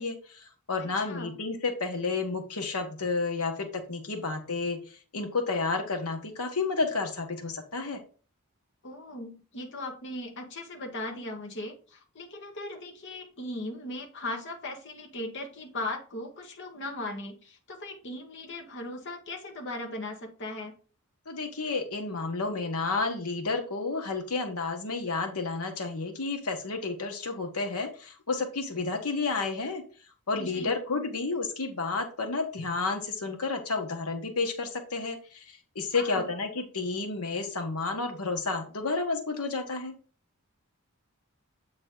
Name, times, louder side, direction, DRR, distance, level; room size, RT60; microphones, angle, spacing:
voice 1, 0.0-8.0 21.3-29.8 30.3-39.9, left 3 dB, 85° left, 5 dB, 1.3 m, -31 dB
voice 2, 0.8-1.4 8.8-20.7 30.3-30.8 35.9-36.3, left 2 dB, 55° left, 2 dB, 1.2 m, -38 dB
7.9 x 4.0 x 3.8 m, 0.39 s
head